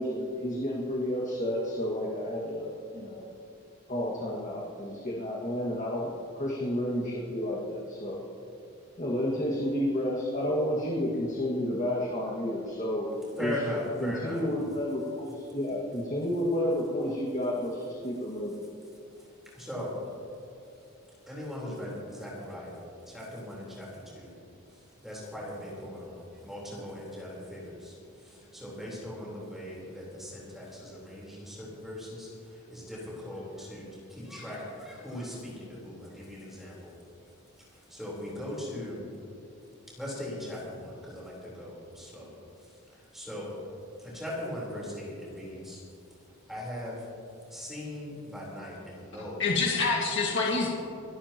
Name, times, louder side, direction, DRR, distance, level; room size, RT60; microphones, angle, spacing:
voice 1, 0.0-3.3 3.9-8.2 9.0-13.1 13.4-13.6 14.0-18.6, left 1 dB, 35° left, -4 dB, 1.9 m, -31 dB
voice 2, 13.4-14.4 19.5-19.9 21.3-22.8 23.1-23.9 24.1-24.3 25.0-28.0 28.2-33.8 34.1-36.9 37.9-39.0 39.9-42.3 43.1-43.5 44.0-45.8 46.5-47.1 47.5-49.4, left 1 dB, ahead, -6 dB, 3.9 m, -39 dB
voice 3, 49.1-50.7, left 4 dB, 55° left, -3 dB, 2.0 m, -27 dB
28.0 x 12.5 x 3.0 m, 2.8 s
head